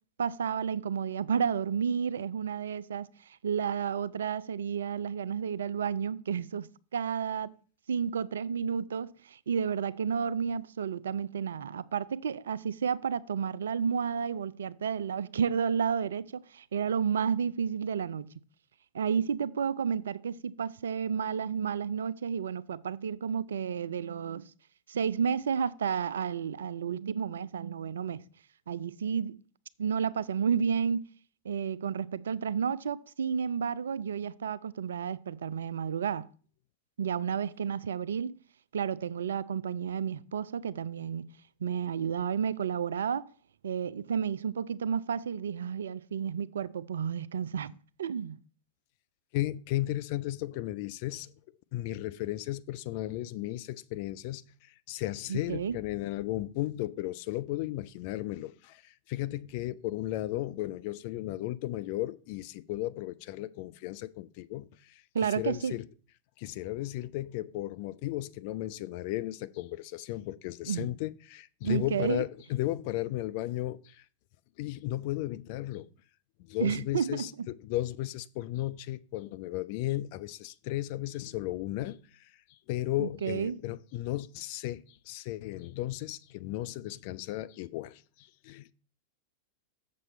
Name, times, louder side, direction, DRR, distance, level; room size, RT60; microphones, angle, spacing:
voice 1, 0.2-7.5 7.9-18.3 18.9-24.5 24.9-28.2 28.7-29.4 29.8-31.0 31.4-36.3 37.0-38.4 38.7-41.3 41.6-43.3 43.6-47.7 48.0-48.4 55.3-55.8 65.1-65.8 70.7-70.9 71.6-72.2 76.6-77.5 83.0-83.6, right 7 dB, 65° right, 0.3 m, -31 dB
voice 2, 49.3-51.3 51.7-65.9 66.4-74.0 74.6-75.9 76.4-82.3 82.7-88.7, left 15 dB, 45° left, 0.4 m, -35 dB
7.4 x 6.7 x 4.2 m
figure-of-eight pair, 90°, 0 cm